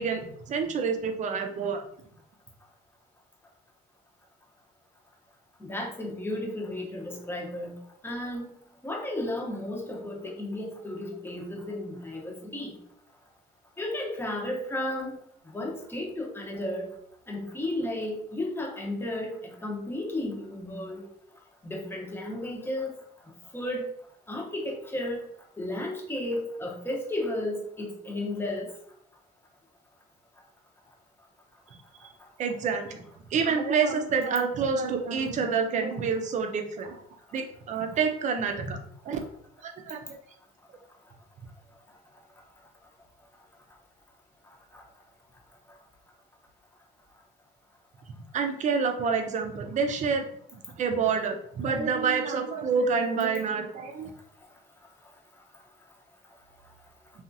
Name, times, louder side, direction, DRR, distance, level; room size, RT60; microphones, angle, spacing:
voice 1, 0.0-1.8 32.0-32.1 32.4-33.0 33.3-37.0 37.3-38.8 39.0-39.2 39.6-40.2 48.3-50.2 50.8-54.1, right 5 dB, 45° right, 6 dB, 0.5 m, -28 dB
voice 2, 5.6-7.8 8.0-8.5 8.8-12.7 13.8-15.2 15.4-16.9 17.3-21.0 21.6-22.9 23.5-23.9 24.3-25.3 25.6-28.7 44.7-44.8, left 1 dB, 15° left, -1 dB, 0.8 m, -33 dB
2.8 x 2.3 x 2.6 m, 0.69 s
cardioid pair, 110°, 17 cm